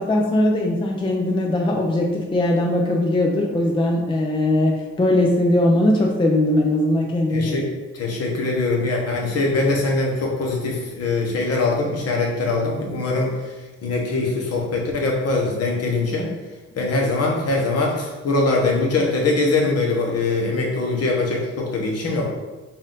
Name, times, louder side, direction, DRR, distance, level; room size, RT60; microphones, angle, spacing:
voice 1, 0.0-7.7, left 1 dB, 15° left, 0 dB, 0.5 m, -20 dB
voice 2, 7.3-7.7 7.9-13.5 13.8-16.3 16.7-22.3, left 3 dB, 55° left, -1 dB, 1.1 m, -22 dB
4.2 x 2.6 x 3.7 m, 1.2 s
cardioid pair, 90°, 30 cm